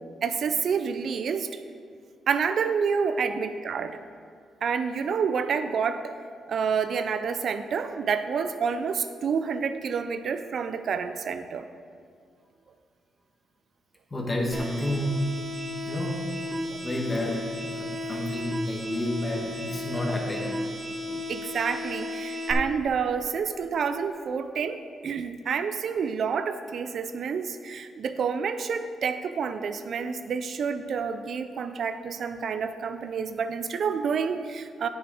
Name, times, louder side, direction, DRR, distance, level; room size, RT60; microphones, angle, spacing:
voice 1, 0.2-1.5 2.3-4.0 4.6-6.2 6.5-11.7 16.7-16.8 21.1-34.9, right 6 dB, 60° right, 10 dB, 0.4 m, -28 dB
voice 2, 14.1-15.2 15.9-16.2 16.8-20.5, left 1 dB, 25° left, 0 dB, 1.4 m, -30 dB
sound 1, 14.5-22.5, left 1 dB, 35° right, 1.3 m, -34 dB
8.5 x 6.9 x 4.8 m, 2.2 s
cardioid pair, 110°, 0 cm